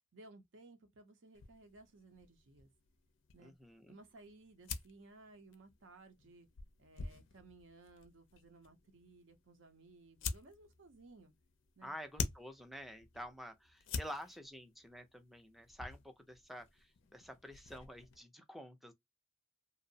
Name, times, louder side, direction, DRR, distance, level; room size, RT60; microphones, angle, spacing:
voice 1, 0.1-2.7 3.3-3.5 3.9-6.5 6.8-11.3 11.8-11.9, right 2 dB, 65° right, 0.6 m, -59 dB
sound 1, 1.3-18.2, left 5 dB, 70° left, 0.4 m, -48 dB
voice 2, 3.4-4.0 11.8-18.9, equal, ahead, 0.4 m, -49 dB
2.7 x 2.0 x 2.6 m
head